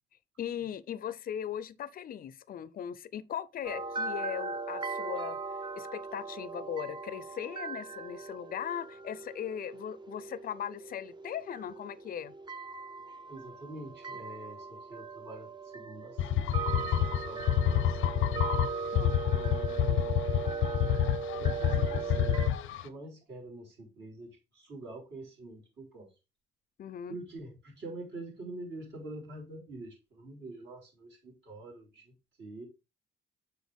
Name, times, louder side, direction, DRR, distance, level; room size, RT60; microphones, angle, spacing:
voice 1, 0.4-5.4 5.7-12.3 18.9-19.1 26.8-27.1, left 9 dB, 45° left, 0.5 m, -38 dB
sound 1, 3.6-22.5, right 4 dB, 20° right, 0.6 m, -39 dB
voice 2, 13.3-18.2 19.3-20.5 21.4-26.1 27.1-32.7, right 2 dB, 65° right, 3.9 m, -46 dB
sound 2, 16.2-22.8, left 11 dB, 85° left, 0.6 m, -28 dB
6.2 x 4.4 x 3.5 m
cardioid pair, 90°, 20 cm